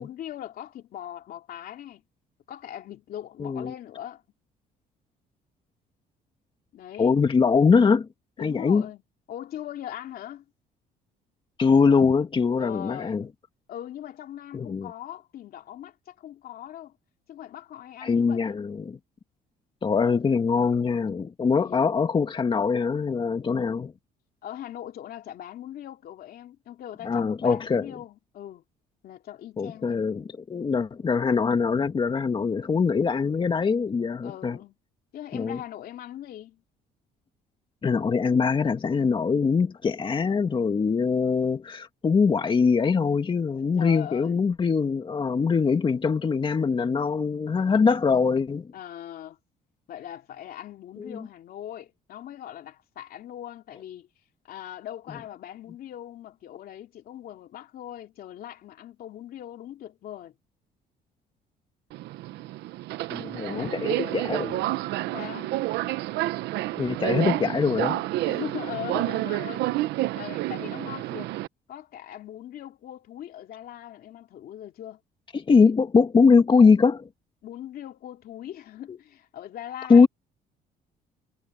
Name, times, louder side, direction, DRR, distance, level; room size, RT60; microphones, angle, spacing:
voice 1, 0.0-2.0 2.5-4.2 6.7-7.1 8.4-9.0 9.3-10.4 12.6-13.2 13.7-17.0 17.3-18.6 21.6-21.9 24.4-28.6 29.0-30.1 34.2-34.8 35.1-36.6 43.7-44.4 48.7-49.4 49.9-54.1 54.4-60.3 63.4-64.3 65.1-65.5 68.2-69.7 70.0-71.3 71.7-75.0 77.4-80.1, left 11 dB, 65° left, 2.9 m, -40 dB
voice 2, 3.4-3.7 7.0-8.1 8.4-8.8 11.6-13.3 14.5-14.9 18.0-19.0 19.8-23.9 27.0-27.9 29.6-34.6 35.3-35.6 37.8-48.7 51.0-51.2 63.1-64.6 66.8-68.0 75.3-77.1 78.9-79.0 79.9-80.1, left 5 dB, 30° left, 2.0 m, -22 dB
Subway metro underground, 61.9-71.5, right 16 dB, 85° right, 1.1 m, -29 dB
cardioid pair, 110°, 17 cm